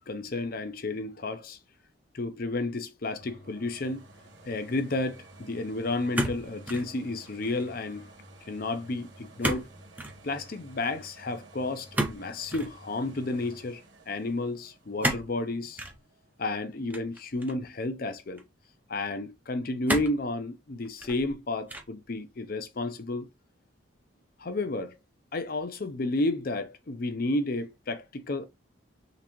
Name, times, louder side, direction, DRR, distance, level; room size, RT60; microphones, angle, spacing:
voice 1, 0.1-1.6 2.1-4.0 4.5-8.1 8.5-9.6 10.2-15.8 16.4-18.4 18.9-23.3 24.4-24.9 25.3-28.4, left 2 dB, 45° left, 0.6 m, -32 dB
sound 1, 3.2-16.9 17.4-17.5, right 1 dB, 65° right, 1.3 m, -52 dB
sound 2, 6.1-6.9 7.3-7.7 9.4-9.7 9.9-10.2 11.9-12.7 15.0-15.3 15.8-16.0 16.9-17.7 18.4-18.5 19.9-20.2 20.8-21.3 21.7-22.0, right 1 dB, 10° right, 0.6 m, -31 dB
3.9 x 3.3 x 3.0 m
head